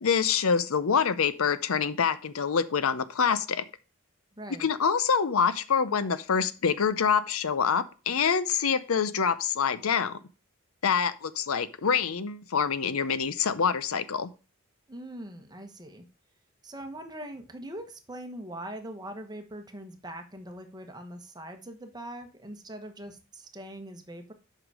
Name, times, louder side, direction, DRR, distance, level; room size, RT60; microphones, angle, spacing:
voice 1, 0.0-3.6 4.6-10.2 10.8-14.3, left 6 dB, 75° left, 14 dB, 0.6 m, -26 dB
voice 2, 4.3-4.7 14.9-16.0 16.6-24.3, right 1 dB, 20° right, 6 dB, 1.2 m, -42 dB
7.9 x 5.8 x 4.9 m, 0.33 s
head